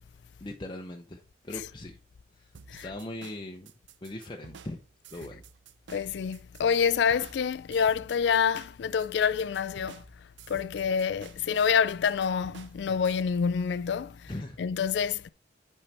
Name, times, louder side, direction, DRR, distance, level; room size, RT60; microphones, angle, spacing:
voice 1, 0.4-2.0 2.4-2.5 2.8-3.7 4.0-4.8 5.1-5.4 14.3-14.6, left 1 dB, 25° left, 0.7 m, -40 dB
Trip Acoustic Beat, 2.5-13.2, right 6 dB, 80° right, 0.6 m, -51 dB
voice 2, 5.9-10.0 10.5-14.3 14.6-15.3, left 7 dB, 70° left, 0.3 m, -27 dB
8.7 x 5.5 x 3.3 m
head